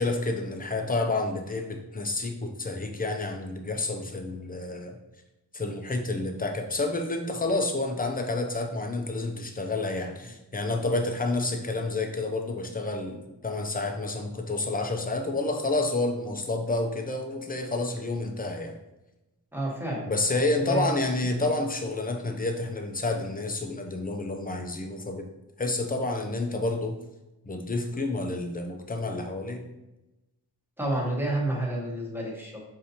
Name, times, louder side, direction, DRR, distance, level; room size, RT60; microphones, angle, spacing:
voice 1, 0.0-5.0 5.5-18.8 20.1-25.3 25.6-27.0 27.4-29.7, left 2 dB, 20° left, 3 dB, 0.5 m, -29 dB
voice 2, 19.5-20.0 20.6-20.9 30.8-32.6, right 1 dB, 5° right, -3 dB, 1.1 m, -29 dB
4.9 x 2.7 x 2.8 m, 0.98 s
wide cardioid pair, 90°, 42 cm